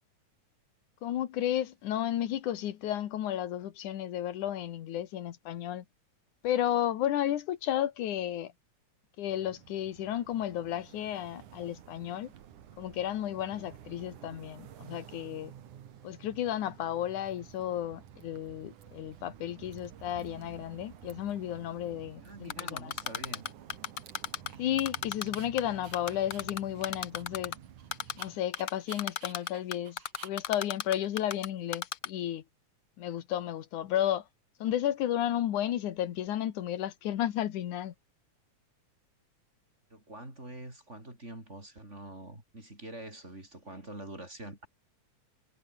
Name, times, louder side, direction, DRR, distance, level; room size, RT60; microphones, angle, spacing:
voice 1, 1.0-5.8 6.4-8.5 9.2-12.3 12.8-15.5 16.0-22.9 24.6-27.5 28.2-32.4 33.0-34.2 34.6-37.9, left 11 dB, 85° left, 2.9 m, -33 dB
sound 1, 9.3-28.4, right 10 dB, 85° right, 3.3 m, -51 dB
Dog, 16.5-16.6 17.3-17.8 18.1-18.8 19.1-19.2 19.5-20.6 20.8-21.5 21.8-21.9 22.3-24.9 25.3-31.9, right 6 dB, 50° right, 3.5 m, -57 dB
voice 2, 22.2-23.4 39.9-44.7, right 1 dB, 20° right, 6.5 m, -45 dB
Typing, 22.5-24.5 24.8-25.6 25.9-27.5 27.9-28.3 28.5-31.5 31.7-32.1, left 11 dB, 60° left, 1.7 m, -33 dB
omnidirectional pair, 3.4 m